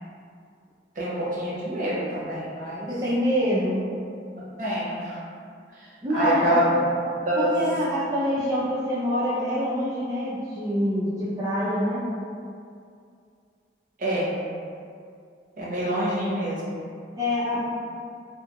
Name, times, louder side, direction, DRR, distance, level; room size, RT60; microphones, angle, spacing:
voice 1, 0.9-2.9 4.4-5.2 5.7-6.7 7.0-7.6 14.0-14.3 15.6-16.8, equal, 45° right, -7 dB, 0.7 m, -27 dB
voice 2, 2.9-3.8 6.0-6.6 7.4-12.1 17.2-17.6, equal, 20° right, -11 dB, 0.4 m, -25 dB
2.7 x 2.3 x 2.8 m, 2.3 s
head